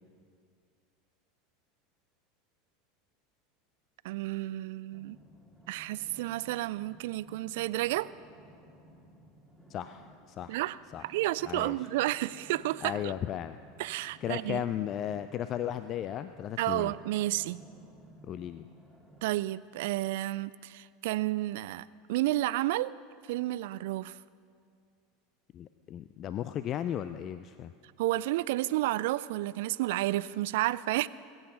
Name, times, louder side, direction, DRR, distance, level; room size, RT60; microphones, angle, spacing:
voice 1, 4.0-5.2 5.7-8.1 10.5-13.1 13.8-14.6 16.6-17.6 19.2-22.9 23.3-24.2 28.0-31.1, right 16 dB, 65° right, 19 dB, 0.3 m, -31 dB
sound 1, 4.9-19.2, equal, ahead, 2.4 m, -56 dB
voice 2, 9.7-10.6 10.9-11.0 11.4-11.8 12.8-13.6 14.2-16.9 18.3-18.7 25.5-27.7, left 10 dB, 40° left, 12 dB, 0.4 m, -35 dB
20.5 x 8.7 x 5.6 m, 2.2 s
hypercardioid pair, 80°, 0 cm